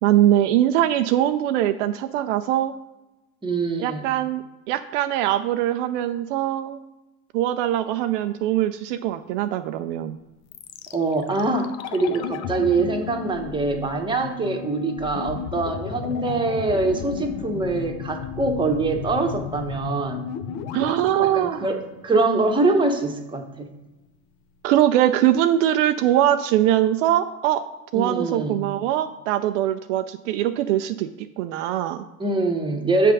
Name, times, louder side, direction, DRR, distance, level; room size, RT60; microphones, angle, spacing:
voice 1, 0.0-2.7 3.8-6.8 7.3-10.2 20.7-21.7 24.6-27.6 27.9-32.0, right 12 dB, 65° right, 9 dB, 0.5 m, -22 dB
voice 2, 3.4-4.1 10.9-20.2 21.2-23.7 27.9-28.6 32.2-33.1, right 3 dB, 10° right, 3 dB, 1.1 m, -24 dB
sound 1, 10.5-22.5 22.8-22.9, left 7 dB, 45° left, 0.6 m, -34 dB
7.3 x 3.3 x 5.4 m, 1.0 s
hypercardioid pair, 85°, 39 cm